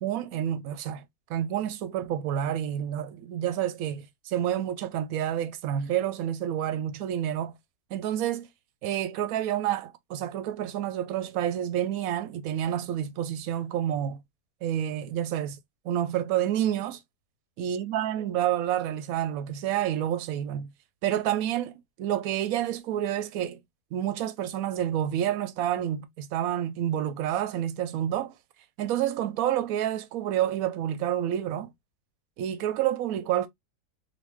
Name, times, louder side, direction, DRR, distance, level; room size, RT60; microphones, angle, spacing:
voice 1, 0.0-1.0 1.3-7.5 7.9-8.5 8.8-14.2 14.6-15.6 15.8-17.0 17.6-20.7 21.0-23.6 23.9-28.3 28.8-31.7 32.4-33.5, right 11 dB, 75° right, 1.0 m, -29 dB
3.4 x 2.5 x 3.1 m
omnidirectional pair, 1.6 m